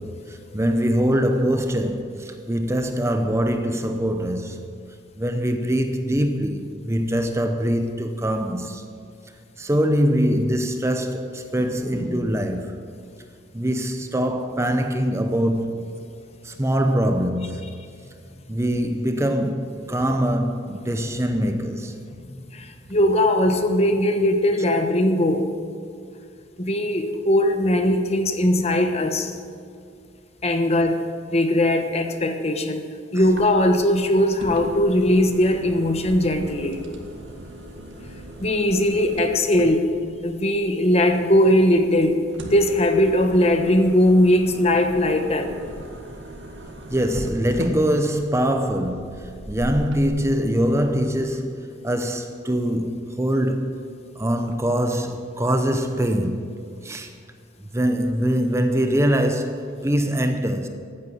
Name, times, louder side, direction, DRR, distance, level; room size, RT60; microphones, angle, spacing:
voice 1, 0.0-4.8 5.2-8.8 9.6-12.8 13.5-15.9 16.4-17.7 18.5-22.0 46.9-53.8 54.2-57.1 57.7-60.7, equal, 15° right, 0.8 m, -23 dB
voice 2, 22.3-25.5 26.6-29.4 30.4-32.8 33.1-36.8 38.4-39.9 40.2-45.5, left 1 dB, 35° left, 1.2 m, -20 dB
sound 1, 33.2-50.0, right 1 dB, 85° right, 1.9 m, -38 dB
14.5 x 9.3 x 9.1 m
head